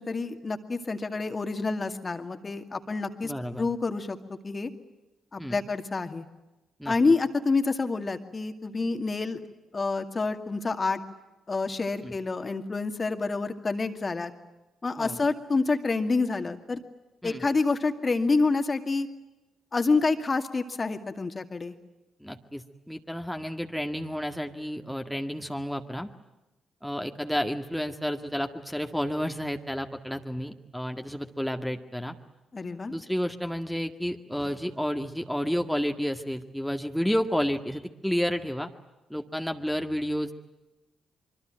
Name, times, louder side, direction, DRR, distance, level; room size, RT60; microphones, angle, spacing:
voice 1, 0.0-4.2 4.4-4.7 5.3-6.2 6.9-9.4 9.7-11.0 11.5-14.3 14.8-16.8 17.2-19.1 19.7-21.7 32.5-32.9, left 3 dB, 35° left, 7 dB, 2.3 m, -28 dB
voice 2, 3.2-3.7 5.4-5.6 6.8-6.9 12.0-12.1 15.0-15.2 17.2-17.4 22.2-26.1 26.8-32.2 32.9-38.7 39.1-40.3, equal, ahead, 4 dB, 1.9 m, -31 dB
25.5 x 24.5 x 9.0 m, 1.0 s
hypercardioid pair, 40°, 0 cm